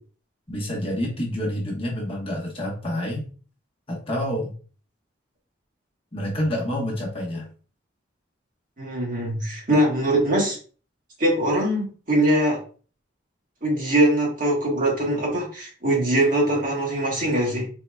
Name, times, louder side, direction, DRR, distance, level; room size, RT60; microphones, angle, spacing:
voice 1, 0.5-3.2 3.9-4.5 6.1-7.5, left 1 dB, 30° left, -3 dB, 1.1 m, -28 dB
voice 2, 8.8-10.6 11.2-12.6 13.6-17.7, right 1 dB, 45° right, -2 dB, 1.4 m, -22 dB
4.3 x 3.8 x 2.3 m, 0.39 s
head